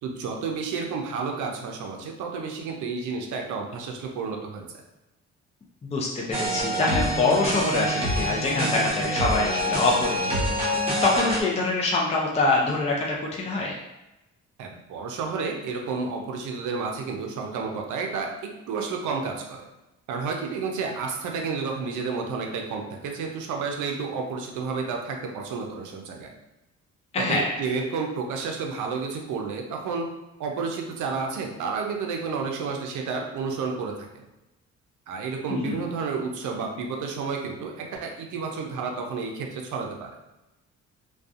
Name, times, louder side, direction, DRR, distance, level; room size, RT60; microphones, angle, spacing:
voice 1, 0.0-4.7 14.6-19.7 20.1-26.3 27.2-30.1 30.4-34.2 35.1-40.1, right 4 dB, 75° right, 2 dB, 0.6 m, -31 dB
voice 2, 5.8-10.5 11.0-13.8 27.1-27.6 35.5-35.8, left 3 dB, 20° left, -3 dB, 0.4 m, -25 dB
sound 1, 6.3-11.4, equal, 20° right, 0.9 m, -26 dB
2.5 x 2.3 x 2.4 m, 0.98 s
cardioid pair, 90°, 30 cm